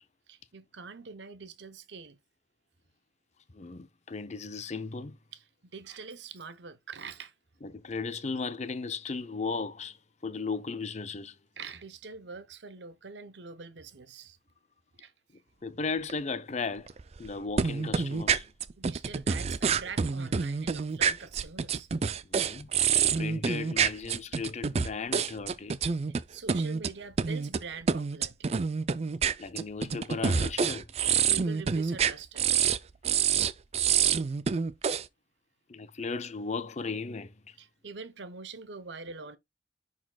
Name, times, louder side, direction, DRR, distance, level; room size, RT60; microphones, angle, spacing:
voice 1, 0.3-2.2 5.3-7.3 11.6-14.4 15.0-15.1 18.8-21.9 26.3-28.6 31.1-32.5 37.6-39.4, right 4 dB, 70° right, 0.8 m, -44 dB
voice 2, 3.5-5.2 7.6-10.0 10.2-11.4 15.6-16.9 17.2-18.5 22.2-25.8 29.4-30.8 35.7-37.6, left 4 dB, 40° left, 0.6 m, -36 dB
sound 1, 16.1-16.2 16.9-17.3 17.6-26.2 26.5-26.9 27.2-27.6 27.9-32.8 33.0-35.0, right 6 dB, 35° right, 0.4 m, -27 dB
10.5 x 4.2 x 2.3 m
head